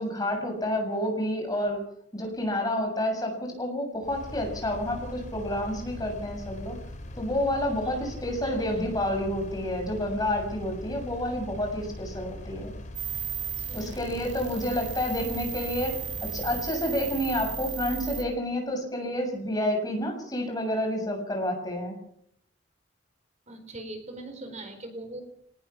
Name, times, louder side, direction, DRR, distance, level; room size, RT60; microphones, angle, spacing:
voice 1, 0.0-1.8 2.1-6.8 7.2-12.7 13.7-22.0, left 1 dB, 20° left, 3 dB, 7.2 m, -29 dB
Engine, 4.0-16.7, left 1 dB, 40° left, 5.9 m, -41 dB
sound 1, 12.9-18.2, right 8 dB, 70° right, 6.8 m, -36 dB
voice 2, 13.6-14.4 23.5-25.2, right 1 dB, 40° right, 6 dB, 4.5 m, -41 dB
24.0 x 19.5 x 6.1 m, 0.70 s
head